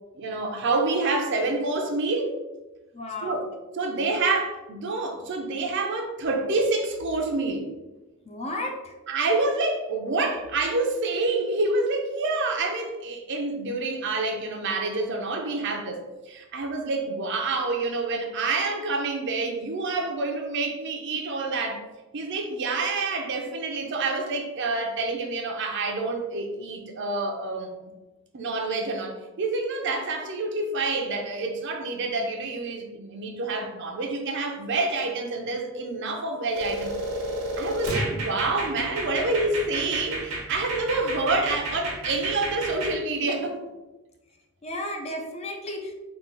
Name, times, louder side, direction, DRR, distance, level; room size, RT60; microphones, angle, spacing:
voice 1, 0.1-2.3 3.2-3.4 3.8-7.7 9.1-16.0 16.3-21.8 22.1-27.7 28.3-37.0 37.6-43.6, right 3 dB, 55° right, 3 dB, 0.6 m, -27 dB
voice 2, 2.9-3.5 8.2-9.0 44.6-45.9, left 1 dB, 30° left, 2 dB, 0.5 m, -33 dB
sound 1, 36.5-43.0, right 1 dB, 85° right, 0.9 m, -31 dB
3.8 x 2.4 x 3.7 m, 1.1 s
head